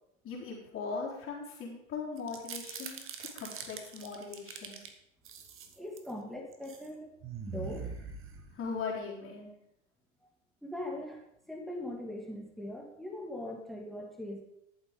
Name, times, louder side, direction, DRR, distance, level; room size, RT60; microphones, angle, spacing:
voice 1, 0.2-4.8 8.5-9.5, left 4 dB, 35° left, -6 dB, 4.2 m, -39 dB
sound 1, 2.2-4.9 5.3-6.1 6.5-6.9 7.2-8.8, right 6 dB, 35° right, 1.8 m, -43 dB
voice 2, 5.8-7.1 7.5-7.9 10.6-14.4, left 1 dB, ahead, 1 dB, 2.2 m, -41 dB
13.5 x 7.3 x 5.3 m, 0.77 s
hypercardioid pair, 90°, 35 cm